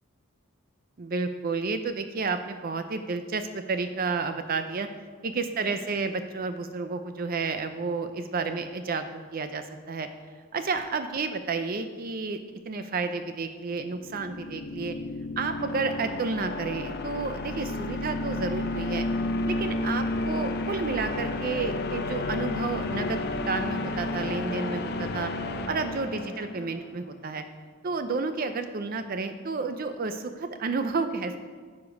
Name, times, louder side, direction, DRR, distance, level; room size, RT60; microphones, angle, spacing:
voice 1, 1.0-4.9 5.2-9.0 9.3-10.1 10.5-12.4 12.7-14.9 15.4-19.1 19.5-25.3 25.7-27.4 27.8-31.4, right 4 dB, 40° right, 8 dB, 0.5 m, -31 dB
sound 1, 13.9-26.8, left 2 dB, 45° left, 0.5 m, -31 dB
14.5 x 5.0 x 5.2 m, 1.5 s
head